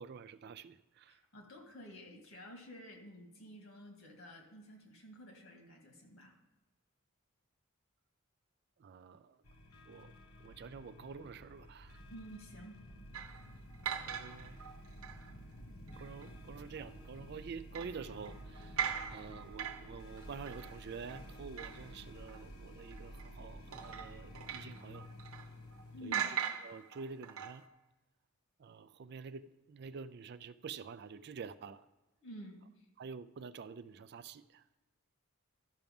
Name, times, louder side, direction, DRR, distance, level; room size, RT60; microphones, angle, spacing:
voice 1, 0.0-1.2 8.8-9.4 9.9-10.1 10.4-12.0 14.0-14.6 16.0-18.8 19.1-25.1 26.0-26.2 26.6-27.6 28.6-31.8 33.0-34.8, right 5 dB, 50° right, 14 dB, 0.4 m, -48 dB
voice 2, 1.1-6.3 12.1-12.8 25.9-26.3 32.2-32.9, equal, 65° left, 2 dB, 2.1 m, -51 dB
sound 1, 9.4-26.0, equal, 85° left, 1.1 m, -52 dB
sound 2, 13.1-15.3 15.9-16.4 16.8-16.9 17.8-22.0 22.3-22.4 22.8-23.3 23.7-25.8 26.1-27.7, right 8 dB, 75° right, 0.9 m, -41 dB
13.0 x 5.9 x 5.3 m, 1.0 s
head